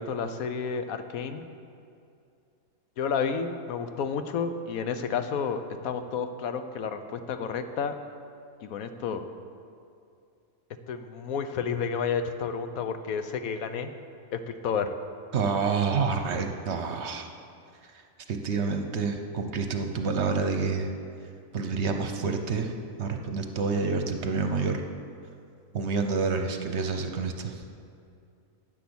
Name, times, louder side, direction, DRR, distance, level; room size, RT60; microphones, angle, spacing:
voice 1, 0.0-1.4 3.0-7.9 8.6-9.2 10.9-13.9 14.3-14.9, left 6 dB, 85° left, 9 dB, 1.2 m, -31 dB
voice 2, 15.3-17.3 17.9-18.0 18.3-20.9 21.5-22.7 23.0-24.8 25.7-27.6, right 4 dB, 55° right, 5 dB, 1.1 m, -28 dB
10.0 x 9.2 x 7.0 m, 2.5 s
omnidirectional pair, 1.4 m